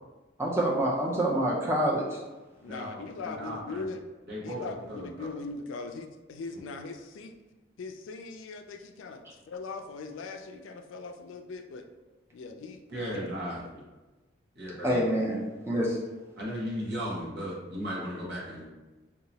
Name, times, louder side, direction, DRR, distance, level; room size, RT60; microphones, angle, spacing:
voice 1, 0.4-2.2 14.8-16.0, right 1 dB, 15° right, -3 dB, 0.4 m, -27 dB
voice 2, 2.6-4.0 4.4-7.3 7.8-11.8 12.3-13.2, left 4 dB, 85° left, 6 dB, 0.4 m, -40 dB
voice 3, 3.2-3.8 4.3-4.6 5.0-5.1 12.9-13.8 14.6-15.0 16.4-18.7, equal, 55° right, -6 dB, 1.0 m, -35 dB
2.8 x 2.3 x 3.9 m, 1.2 s
head